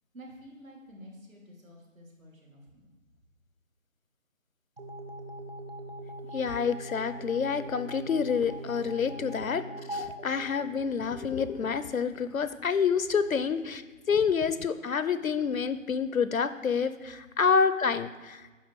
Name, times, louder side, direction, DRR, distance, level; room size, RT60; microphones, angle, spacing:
voice 1, 0.1-2.9 8.9-9.1, equal, 80° right, -2 dB, 2.6 m, -50 dB
sound 1, 4.8-11.3, right 1 dB, 45° right, 0.7 m, -41 dB
voice 2, 6.3-9.6 9.9-13.8 14.1-18.5, left 6 dB, 90° left, 13 dB, 0.7 m, -28 dB
10.0 x 3.4 x 6.3 m, 1.2 s
figure-of-eight pair, 175°, 40 cm